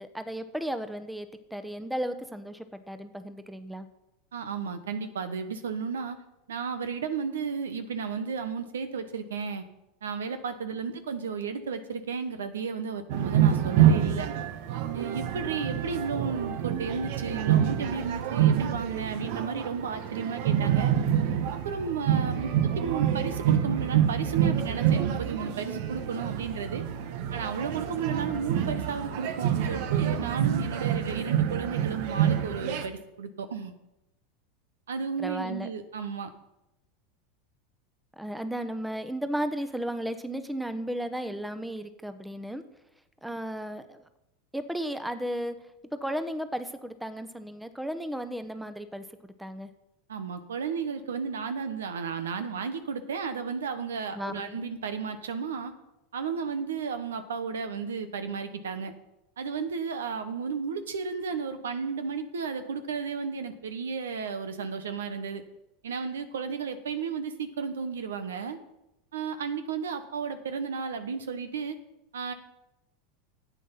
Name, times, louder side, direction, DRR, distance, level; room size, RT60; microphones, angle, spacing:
voice 1, 0.0-3.9 35.2-35.7 38.2-42.6 43.2-44.0 44.5-45.6 45.8-49.0 49.4-49.7 54.1-54.6, equal, 5° right, 10 dB, 1.0 m, -34 dB
voice 2, 4.3-6.2 6.5-9.6 10.0-14.3 14.9-20.9 21.5-26.8 27.3-33.7 34.9-36.3 50.1-55.7 56.1-58.9 59.4-65.4 65.8-68.6 69.1-71.8 72.1-72.3, right 5 dB, 80° right, 10 dB, 1.0 m, -33 dB
sound 1, 13.1-32.9, right 10 dB, 65° right, 1.0 m, -27 dB
11.0 x 8.4 x 5.8 m, 0.90 s
hypercardioid pair, 90°, 0 cm